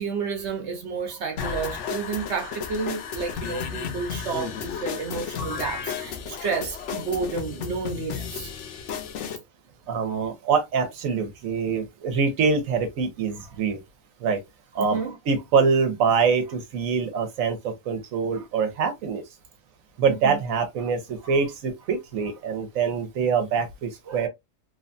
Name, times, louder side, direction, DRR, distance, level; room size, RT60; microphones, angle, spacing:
voice 1, 0.0-8.5 14.8-15.2 18.3-18.5 20.1-20.4 21.2-21.4 24.1-24.3, right 5 dB, 60° right, 1.0 m, -31 dB
sound 1, 1.4-9.4, left 7 dB, 70° left, 0.9 m, -33 dB
voice 2, 9.9-13.8 14.2-14.4 14.7-15.0 15.3-19.2 20.0-24.3, right 5 dB, 90° right, 1.2 m, -24 dB
3.1 x 2.2 x 2.5 m
omnidirectional pair, 1.4 m